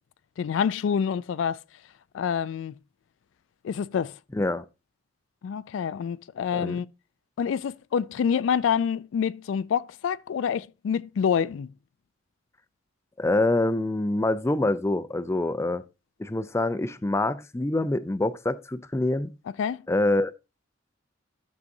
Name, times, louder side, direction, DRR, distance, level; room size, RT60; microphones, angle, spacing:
voice 1, 0.4-1.6 2.1-2.7 3.6-4.2 5.4-6.9 7.4-11.7 19.6-19.8, left 7 dB, 85° left, 0.3 m, -27 dB
voice 2, 4.3-4.6 6.5-6.8 13.2-15.8 16.2-19.3 19.9-20.3, left 2 dB, 15° left, 0.4 m, -25 dB
12.0 x 6.5 x 2.7 m
head